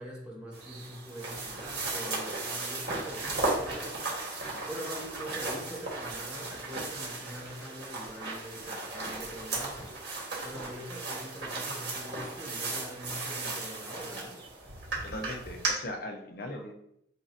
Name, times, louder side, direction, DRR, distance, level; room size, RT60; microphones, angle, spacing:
voice 1, 0.0-3.9 4.6-9.9 10.4-14.4, equal, 5° right, -4 dB, 1.2 m, -43 dB
sound 1, 0.5-15.7, right 3 dB, 75° right, 1.5 m, -36 dB
voice 2, 15.0-16.7, left 1 dB, 60° left, 3 dB, 0.8 m, -39 dB
7.5 x 2.5 x 2.7 m, 0.73 s
head